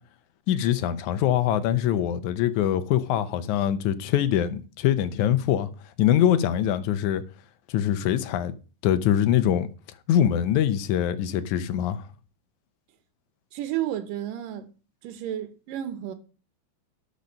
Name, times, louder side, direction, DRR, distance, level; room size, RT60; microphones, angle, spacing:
voice 1, 0.5-5.7 6.0-7.2 7.7-8.5 8.8-9.7 10.1-12.0, left 10 dB, 75° left, 2.0 m, -23 dB
voice 2, 13.5-14.7 15.0-16.1, right 12 dB, 80° right, 2.7 m, -31 dB
13.0 x 5.3 x 5.3 m
omnidirectional pair, 3.9 m